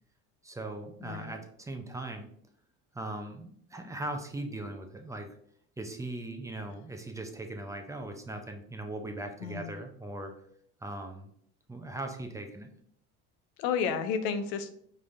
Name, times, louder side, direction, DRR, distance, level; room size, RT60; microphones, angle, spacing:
voice 1, 0.4-2.3 2.9-5.3 5.8-10.3 10.8-11.3 11.7-12.7, right 2 dB, 10° right, 4 dB, 0.6 m, -39 dB
voice 2, 1.0-1.4 9.4-9.7 13.6-14.7, left 6 dB, 85° left, 8 dB, 0.6 m, -31 dB
5.3 x 3.3 x 2.6 m, 0.65 s
supercardioid pair, 105°, 31 cm